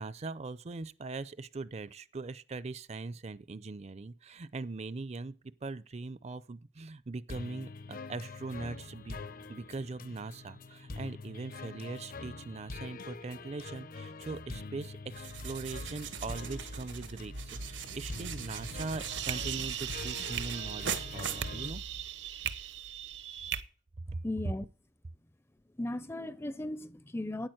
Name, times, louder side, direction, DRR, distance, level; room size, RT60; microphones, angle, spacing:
voice 1, 0.0-5.4 5.6-9.2 9.5-21.8 24.1-24.2 24.4-24.5, right 3 dB, 35° right, 0.5 m, -41 dB
sound 1, 7.3-21.7, left 3 dB, 50° left, 0.7 m, -45 dB
sound 2, 15.1-22.1, right 5 dB, 90° right, 1.3 m, -40 dB
sound 3, 18.6-23.6, right 10 dB, 70° right, 0.8 m, -38 dB
voice 2, 24.2-24.6 25.8-27.5, left 1 dB, 15° left, 0.5 m, -36 dB
9.3 x 8.9 x 7.8 m
head